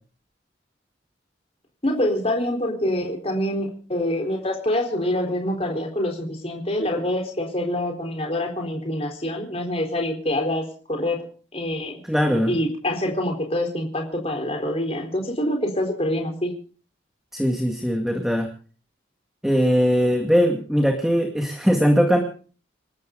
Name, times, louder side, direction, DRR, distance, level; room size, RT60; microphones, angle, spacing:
voice 1, 1.8-11.3 11.5-12.0 12.5-16.5, left 1 dB, 30° left, 2 dB, 4.1 m, -26 dB
voice 2, 12.0-12.5 17.3-18.5 19.4-22.2, equal, ahead, 3 dB, 2.0 m, -20 dB
28.0 x 13.0 x 3.9 m, 0.39 s
head